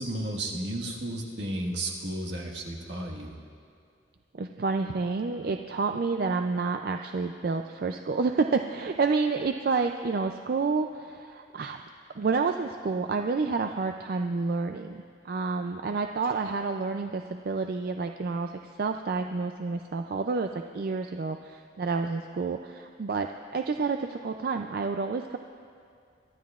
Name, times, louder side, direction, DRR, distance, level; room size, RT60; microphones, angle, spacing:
voice 1, 0.0-3.3, right 1 dB, 75° right, -2 dB, 1.6 m, -33 dB
voice 2, 4.3-11.8 12.1-25.4, right 4 dB, 55° right, 6 dB, 0.4 m, -29 dB
23.5 x 12.5 x 2.4 m, 2.3 s
head